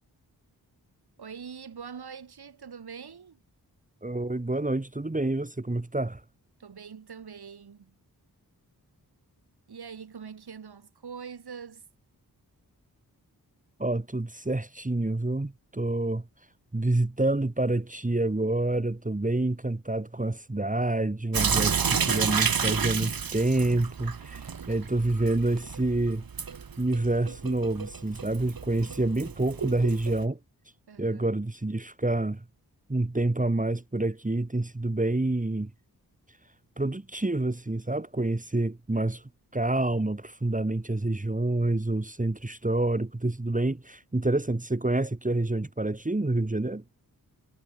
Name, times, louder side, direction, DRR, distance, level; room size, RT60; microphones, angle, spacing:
voice 1, 1.2-3.4 6.6-7.9 9.7-11.9 30.9-31.3, right 6 dB, 80° right, 2.7 m, -43 dB
voice 2, 4.0-6.2 13.8-16.3 16.7-26.2 26.8-30.4 31.0-32.4 32.9-35.7 36.8-39.2 39.5-46.8, right 2 dB, 20° right, 2.5 m, -28 dB
Sink (filling or washing) / Drip, 21.3-30.2, right 6 dB, 65° right, 1.8 m, -31 dB
cardioid pair, 60°, 38 cm